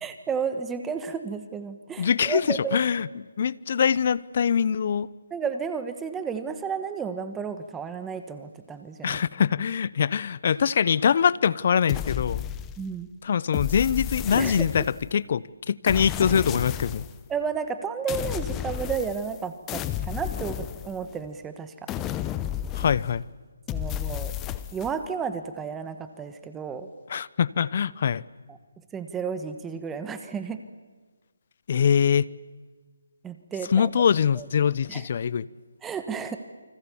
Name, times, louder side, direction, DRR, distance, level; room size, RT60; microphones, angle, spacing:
voice 1, 0.0-2.8 5.3-9.2 12.8-13.1 14.4-14.6 17.3-21.9 23.7-24.3 24.7-26.9 28.5-28.6 28.9-30.6 33.2-33.9 34.3-34.5 34.9-35.1 35.8-36.4, right 6 dB, 10° right, 1.3 m, -32 dB
voice 2, 2.0-5.1 9.0-12.5 13.2-14.8 15.1-17.0 22.7-23.2 27.1-28.2 31.7-32.3 33.7-35.5, left 7 dB, 45° left, 0.8 m, -23 dB
sound 1, 11.9-13.0 13.5-15.2 15.9-17.2 18.1-19.4 19.7-21.3 21.9-23.2 23.7-24.9, left 11 dB, 15° left, 0.9 m, -32 dB
29.0 x 25.0 x 7.2 m
figure-of-eight pair, 155°, 0 cm